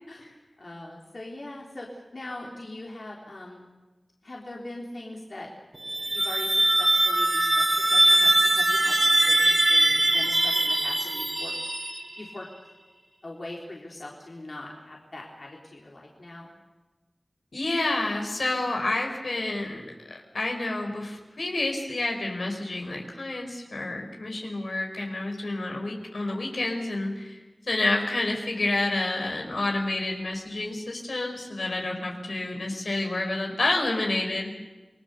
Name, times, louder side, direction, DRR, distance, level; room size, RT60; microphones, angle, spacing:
voice 1, 0.6-1.9 2.1-3.6 4.2-5.5 6.1-11.5 12.2-12.5 13.2-16.5, left 2 dB, 65° left, -2 dB, 3.7 m, -41 dB
sound 1, 5.7-12.4, right 1 dB, 40° right, 3.4 m, -22 dB
voice 2, 17.5-19.8 20.3-27.3 27.7-34.5, left 2 dB, 85° left, 1 dB, 4.8 m, -29 dB
28.0 x 21.0 x 6.8 m, 1.2 s
wide cardioid pair, 55°, 0 cm